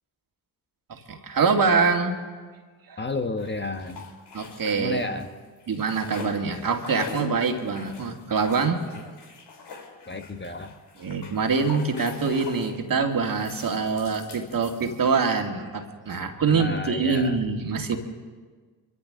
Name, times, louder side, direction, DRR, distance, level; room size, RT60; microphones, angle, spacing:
voice 1, 0.9-2.1 2.9-3.0 4.3-5.1 5.7-8.8 11.0-18.0, right 5 dB, 45° right, 4 dB, 2.2 m, -24 dB
voice 2, 3.0-4.1 4.8-5.3 10.1-10.7 16.5-17.4, left 3 dB, 25° left, 6 dB, 1.2 m, -31 dB
sound 1, 3.4-5.3 5.6-12.8 13.3-15.3, left 5 dB, 55° left, 2.8 m, -43 dB
25.0 x 14.5 x 3.8 m, 1.4 s
hypercardioid pair, 45°, 47 cm